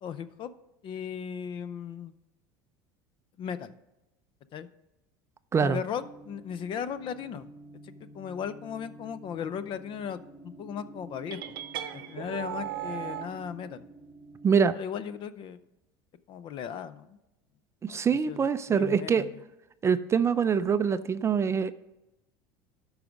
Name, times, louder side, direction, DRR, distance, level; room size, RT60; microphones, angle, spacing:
voice 1, 0.0-0.5 0.8-2.1 3.4-3.7 4.5-4.7 5.6-7.5 7.8-11.5 11.9-13.9 14.7-15.6 16.3-17.2 17.9-19.3, left 8 dB, 45° left, 14 dB, 0.6 m, -37 dB
sound 1, 5.9-14.6, right 2 dB, ahead, 1.4 m, -49 dB
sound 2, 11.3-13.3, right 11 dB, 90° right, 0.7 m, -36 dB
voice 2, 14.4-14.8 17.8-19.3 19.8-21.7, right 6 dB, 25° right, 13 dB, 0.4 m, -24 dB
12.5 x 4.8 x 5.1 m, 0.97 s
supercardioid pair, 100°, 12 cm